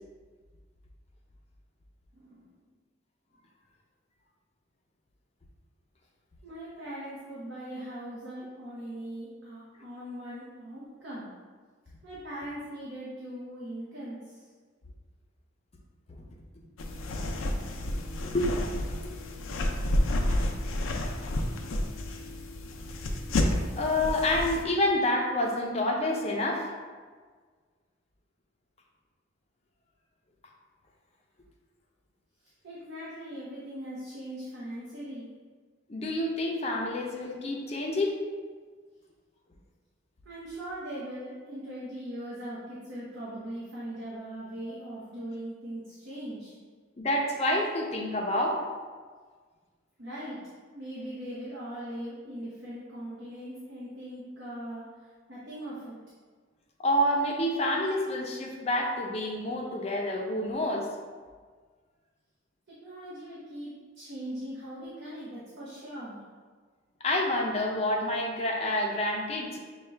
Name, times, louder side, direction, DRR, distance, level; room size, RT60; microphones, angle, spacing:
voice 1, 2.1-2.6 6.4-11.3 12.0-14.5 32.6-35.3 40.2-46.6 50.0-50.4 50.7-56.0 62.7-66.2, right 1 dB, 65° right, -8 dB, 0.8 m, -40 dB
sound 1, 16.8-24.6, left 1 dB, 85° left, 0.4 m, -30 dB
voice 2, 23.8-26.7 35.9-38.2 47.0-48.6 56.8-60.9 67.0-69.6, left 1 dB, 30° left, 0 dB, 0.5 m, -28 dB
5.6 x 2.3 x 3.2 m, 1.5 s
head